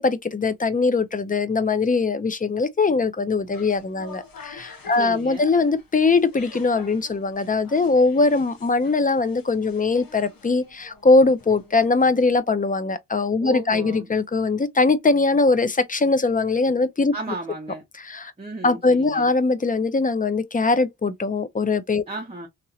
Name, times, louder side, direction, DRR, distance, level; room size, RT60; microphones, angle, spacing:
voice 1, 0.0-17.1 18.0-18.3 18.6-22.0, left 3 dB, 25° left, 0.5 m, -21 dB
sound 1, 3.3-12.4, left 3 dB, 75° left, 1.0 m, -47 dB
voice 2, 4.9-5.5 13.4-14.1 17.1-17.8 18.4-19.3 22.1-22.5, right 2 dB, 15° right, 0.8 m, -34 dB
2.9 x 2.8 x 2.6 m
cardioid pair, 80°, 35 cm